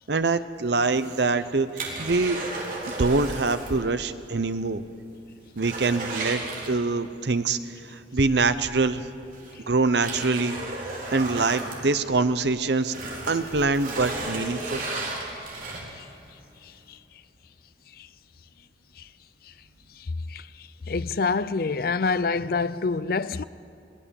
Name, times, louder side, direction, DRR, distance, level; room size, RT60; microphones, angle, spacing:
voice 1, 0.1-2.4 2.8-4.8 5.6-7.6 7.9-9.1 9.7-10.6 11.1-12.9 13.3-14.9, right 3 dB, 75° right, 0.9 m, -24 dB
sound 1, 0.8-3.8 4.1-4.2 4.7-4.8 5.1-7.2 8.6-8.7 9.3-12.4 12.8-16.1 16.6-16.7, right 2 dB, 50° right, 3.5 m, -34 dB
voice 2, 16.6-17.0 17.9-18.1 19.0-19.1 19.4-19.5 19.9-23.4, left 4 dB, 55° left, 0.5 m, -28 dB
21.5 x 17.5 x 7.2 m
head